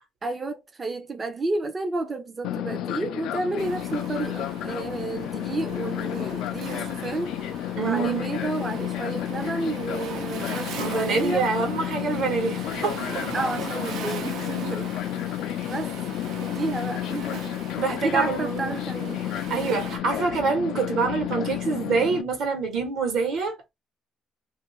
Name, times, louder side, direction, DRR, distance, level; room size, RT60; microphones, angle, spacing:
voice 1, 0.2-7.3 7.8-11.5 13.3-15.0 15.7-16.0 16.4-17.5 17.9-19.7, right 2 dB, 20° right, 0.5 m, -31 dB
Fixed-wing aircraft airplane, 2.4-22.2, left 12 dB, 70° left, 0.3 m, -31 dB
Waves surf, 3.6-20.0, right 6 dB, 80° right, 0.7 m, -40 dB
voice 2, 7.8-8.3 10.8-13.3 17.8-18.7 19.5-23.7, right 4 dB, 65° right, 1.0 m, -26 dB
2.6 x 2.4 x 3.0 m
cardioid pair, 170°, 0 cm